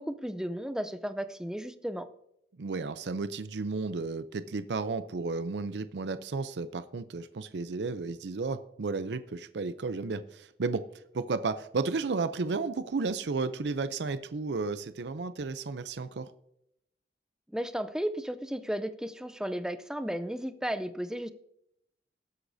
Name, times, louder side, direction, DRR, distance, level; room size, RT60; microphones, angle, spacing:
voice 1, 0.0-2.1 17.5-21.3, equal, 5° right, 11 dB, 0.5 m, -34 dB
voice 2, 2.6-10.8 11.1-16.3, right 4 dB, 75° right, 12 dB, 0.5 m, -33 dB
18.5 x 8.1 x 2.7 m, 0.77 s
head